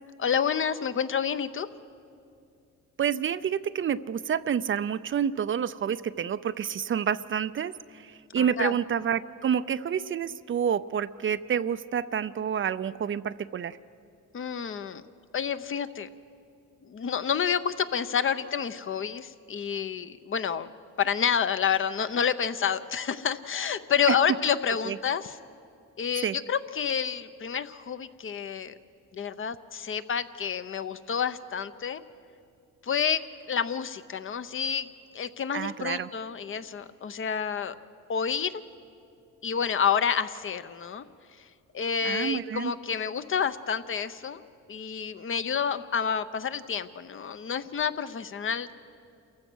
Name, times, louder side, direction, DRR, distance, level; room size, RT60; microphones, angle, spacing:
voice 1, 0.2-1.7 8.4-8.8 14.3-15.0 15.3-16.1 16.9-20.7 21.0-25.4 26.0-28.7 29.1-32.0 32.8-34.9 35.1-37.7 38.1-38.6 39.4-41.0 41.7-48.7, left 7 dB, 45° left, 12 dB, 0.8 m, -29 dB
voice 2, 3.0-13.8 24.1-24.2 24.9-25.0 26.2-26.4 35.5-36.1 42.0-42.7, right 8 dB, 40° right, 14 dB, 0.5 m, -28 dB
28.0 x 15.0 x 6.3 m, 2.5 s
cardioid pair, 90°, 30 cm